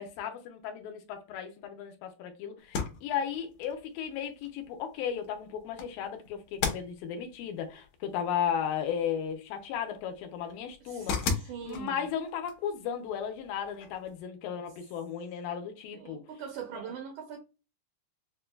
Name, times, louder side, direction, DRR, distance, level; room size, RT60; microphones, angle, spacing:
voice 1, 0.0-16.2 16.7-16.8, left 8 dB, 85° left, 2.4 m, -35 dB
sound 1, 2.6-14.2, left 5 dB, 70° left, 1.8 m, -40 dB
voice 2, 10.8-12.1 15.9-17.4, right 7 dB, 75° right, 1.8 m, -42 dB
6.7 x 2.2 x 2.3 m
omnidirectional pair, 4.1 m